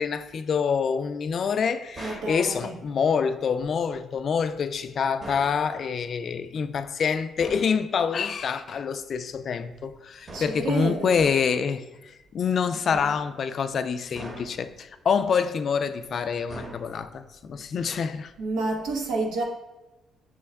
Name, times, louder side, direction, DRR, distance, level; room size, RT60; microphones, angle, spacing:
voice 1, 0.0-18.3, left 6 dB, 55° left, 0.3 m, -26 dB
sound 1, 2.0-2.4 5.2-5.6 7.4-7.8 10.3-10.7 11.2-11.6 12.9-13.4 14.2-14.7 16.5-17.2, right 1 dB, 30° right, 0.9 m, -40 dB
voice 2, 2.0-2.7 10.3-11.2 18.4-19.4, right 3 dB, 85° right, 0.8 m, -29 dB
6.0 x 2.2 x 3.4 m
cardioid pair, 90°, 0 cm